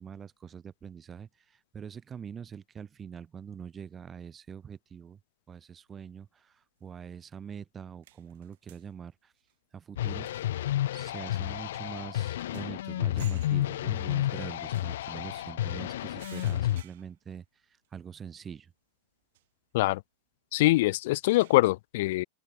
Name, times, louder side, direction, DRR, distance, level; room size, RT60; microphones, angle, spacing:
voice 1, 0.0-5.2 5.5-9.3 9.7-10.3 10.9-17.4 17.9-18.7, right 7 dB, 15° right, 2.0 m, -44 dB
sound 1, 7.5-7.6 8.0-8.9 9.4-9.5 10.2-10.7 11.1-11.3 11.7-11.8 12.0-12.8 13.2-13.7 14.6-15.5 16.2-17.4 17.8-17.9 19.3-19.4 21.0-21.7, right 16 dB, 60° right, 5.5 m, -56 dB
sound 2, 10.0-16.8, left 13 dB, 75° left, 0.3 m, -31 dB
voice 2, 20.5-22.2, left 18 dB, 55° left, 0.7 m, -23 dB
open air
supercardioid pair, 170°, 0 cm